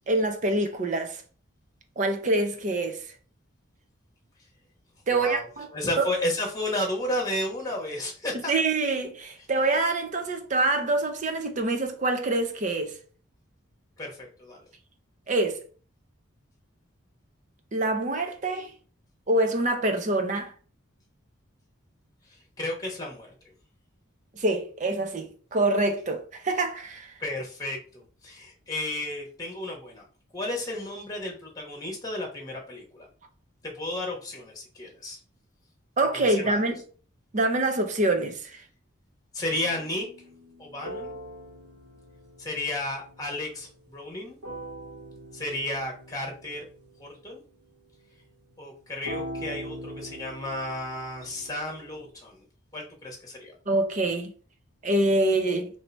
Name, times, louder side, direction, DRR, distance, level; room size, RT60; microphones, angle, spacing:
voice 1, 0.1-1.2 2.0-3.0 5.1-5.7 6.0-6.1 8.5-12.9 15.3-15.6 17.7-18.7 19.3-20.5 24.4-27.1 36.0-36.8 37.3-38.6 53.7-54.3 54.8-55.7, right 2 dB, 35° right, 0.6 m, -25 dB
voice 2, 5.1-5.4 5.7-8.5 14.0-14.6 22.6-23.3 27.2-30.0 30.3-33.1 33.6-35.2 36.1-36.6 39.3-40.1 40.6-41.1 42.4-44.4 45.3-46.7 47.0-47.4 48.6-52.4 52.7-53.5, left 1 dB, 15° left, 1.0 m, -33 dB
sound 1, 39.5-44.1 44.4-47.3 49.0-52.1, right 1 dB, 80° right, 1.5 m, -42 dB
3.1 x 2.7 x 4.4 m
head